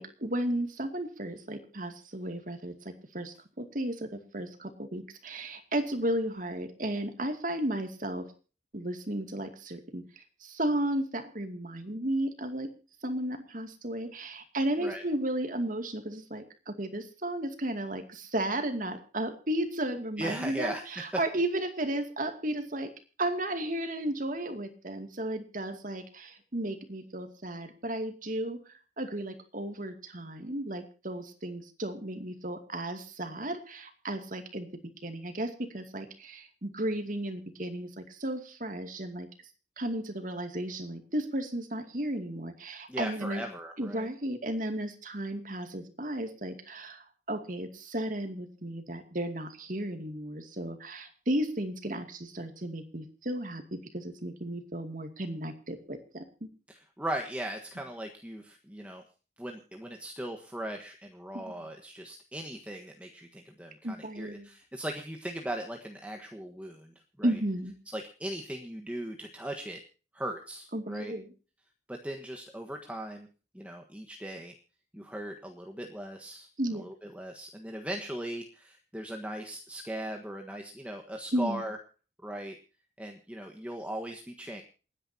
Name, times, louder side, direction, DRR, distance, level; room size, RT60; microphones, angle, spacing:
voice 1, 0.0-8.3 8.7-12.7 13.0-22.9 23.2-28.6 29.0-34.7 35.0-39.3 39.8-43.4 43.8-56.2 61.3-61.7 63.8-64.5 67.2-67.7 70.7-71.3 76.6-76.9 81.3-81.6, right 1 dB, 50° right, 6 dB, 2.4 m, -34 dB
voice 2, 20.2-21.2 42.9-44.1 56.7-59.0 59.4-67.4 67.9-69.8 70.1-71.1 71.9-73.3 73.5-74.6 74.9-76.5 76.7-81.8 82.2-82.6 83.0-84.6, right 1 dB, 10° right, 3 dB, 1.4 m, -38 dB
28.5 x 10.0 x 2.8 m, 0.37 s
head